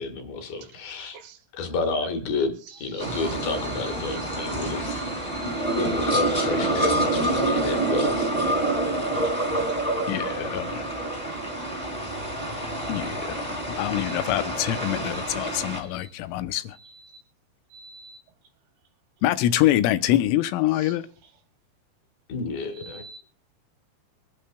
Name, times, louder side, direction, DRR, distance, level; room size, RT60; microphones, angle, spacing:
voice 1, 0.0-1.2 1.5-5.0 5.7-8.3 22.3-23.0, left 4 dB, 60° left, 2.9 m, -30 dB
sound 1, 3.0-15.8, right 2 dB, 30° left, 0.7 m, -27 dB
voice 2, 10.1-10.9 12.9-13.4 13.7-16.8 19.2-21.1, left 13 dB, 90° left, 3.2 m, -25 dB
voice 3, 12.8-13.2 14.7-15.2 15.8-16.1 16.7-17.2 17.7-18.2 20.7-20.9 22.7-23.2, right 4 dB, 80° right, 2.3 m, -47 dB
24.0 x 11.5 x 2.2 m
omnidirectional pair, 5.6 m